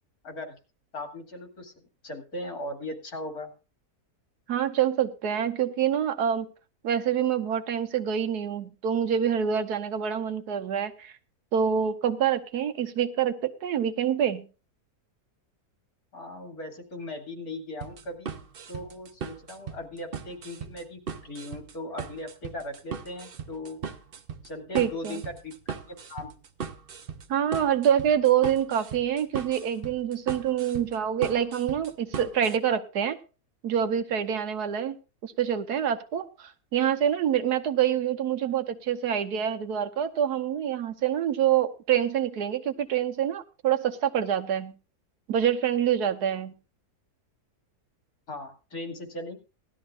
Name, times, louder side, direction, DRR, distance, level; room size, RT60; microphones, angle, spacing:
voice 1, 0.2-0.5 0.9-1.7 2.0-3.5 16.1-18.3 18.7-23.8 24.4-26.3 48.3-49.4, left 1 dB, 65° left, 3 dB, 3.1 m, -38 dB
voice 2, 4.5-6.5 6.8-11.1 11.5-14.5 24.7-25.2 27.3-33.2 33.6-35.0 35.2-44.7 45.3-46.6, right 9 dB, 80° right, 8 dB, 1.4 m, -26 dB
sound 1, 17.8-32.6, right 6 dB, 45° right, 0.8 m, -38 dB
18.0 x 12.5 x 2.5 m, 0.33 s
omnidirectional pair, 1.7 m